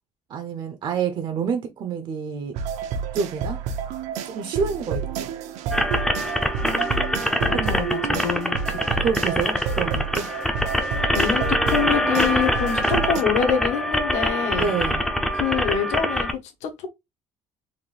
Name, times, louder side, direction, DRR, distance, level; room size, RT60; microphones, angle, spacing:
voice 1, 0.3-2.6 3.1-3.6 4.2-5.3 7.5-7.9 9.0-10.3 14.5-15.0, right 6 dB, 40° right, 0.6 m, -28 dB
sound 1, 2.5-13.2, right 6 dB, 80° right, 0.7 m, -30 dB
sound 2, 5.7-16.3, equal, 5° left, 0.4 m, -24 dB
voice 2, 6.6-8.8 10.8-14.7 15.3-16.9, left 7 dB, 75° left, 1.2 m, -26 dB
3.9 x 2.6 x 3.2 m
cardioid pair, 175°, 12 cm